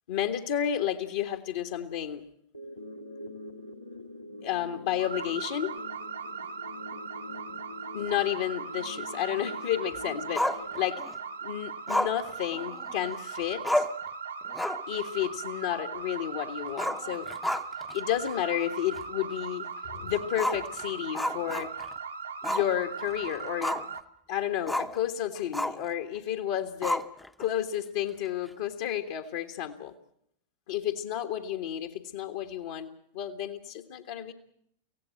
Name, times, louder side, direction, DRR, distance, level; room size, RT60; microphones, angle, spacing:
voice 1, 0.1-2.2 4.4-5.7 7.9-10.5 10.8-11.0 11.4-13.9 14.9-17.3 17.9-21.7 22.4-23.8 24.3-27.0 27.4-29.9 30.7-34.3, left 11 dB, 55° left, 5 dB, 1.5 m, -31 dB
sound 1, 2.5-11.6, left 2 dB, 85° left, 2.1 m, -45 dB
sound 2, 5.0-24.0, right 6 dB, 75° right, 1.4 m, -39 dB
Growling, 10.3-11.2 11.9-13.1 13.4-13.5 13.6-14.1 14.5-14.9 15.3-15.4 16.7-17.9 18.3-18.4 18.9-19.0 20.3-22.0 22.4-22.7 23.1-24.0 24.7-25.0 25.5-25.9 26.8-27.4, left 1 dB, 5° left, 0.8 m, -31 dB
25.5 x 17.0 x 7.6 m, 0.72 s
figure-of-eight pair, 90°, 0 cm